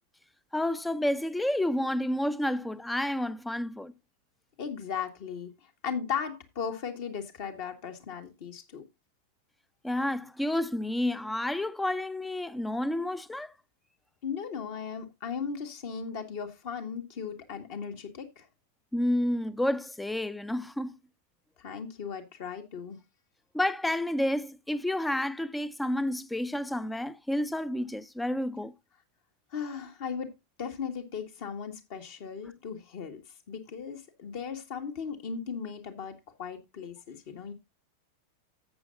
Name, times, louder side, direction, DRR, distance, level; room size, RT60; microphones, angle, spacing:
voice 1, 0.5-3.9 9.8-13.5 18.9-20.9 23.5-28.7, left 1 dB, 5° left, 0.5 m, -30 dB
voice 2, 4.6-5.5 5.8-8.8 14.2-18.5 21.6-23.0 29.5-30.3 30.6-33.2 33.5-37.5, left 6 dB, 50° left, 1.7 m, -37 dB
14.0 x 7.8 x 2.6 m
figure-of-eight pair, 90°, 0 cm